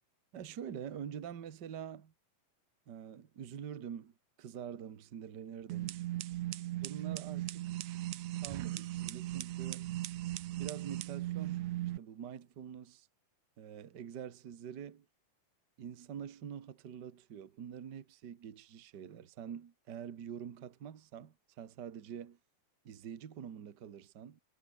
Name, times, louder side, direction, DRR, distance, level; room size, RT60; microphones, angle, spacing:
voice 1, 0.3-2.1 2.9-6.0 6.7-7.8 8.4-9.9 10.6-11.7 12.0-13.1 13.6-15.0 15.8-22.4 22.8-24.4, right 8 dB, 45° right, 1.5 m, -46 dB
sound 1, 5.7-12.0, right 15 dB, 70° right, 1.7 m, -38 dB
omnidirectional pair, 4.0 m